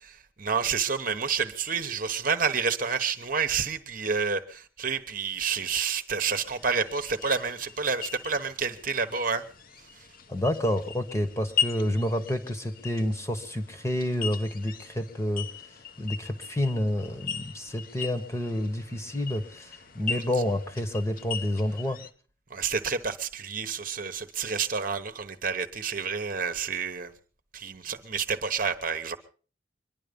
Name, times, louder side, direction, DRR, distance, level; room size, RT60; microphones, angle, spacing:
voice 1, 0.4-9.4 20.1-20.2 22.5-27.1 27.5-29.2, right 5 dB, 45° right, 8 dB, 1.1 m, -29 dB
sound 1, 6.2-22.1, left 7 dB, 45° left, 0.9 m, -38 dB
voice 2, 10.3-15.5 16.0-22.0, left 1 dB, 15° left, 8 dB, 1.2 m, -29 dB
24.0 x 11.0 x 5.2 m, 0.39 s
head